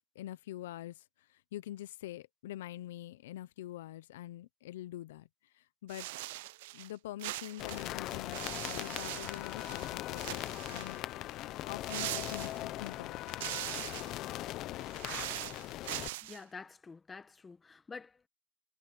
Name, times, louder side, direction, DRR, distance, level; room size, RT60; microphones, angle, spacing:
voice 1, 0.0-6.1 6.7-11.0 11.7-13.3, left 14 dB, 70° left, 0.7 m, -45 dB
sound 1, 5.9-6.9 7.2-9.9 10.2-11.0 11.9-12.9 13.3-14.2 14.8-16.4, right 19 dB, 60° right, 0.4 m, -41 dB
sound 2, 7.6-16.1, left 15 dB, 35° left, 0.7 m, -40 dB
voice 2, 16.2-18.3, left 4 dB, 10° left, 1.2 m, -48 dB
supercardioid pair, 160°, 0 cm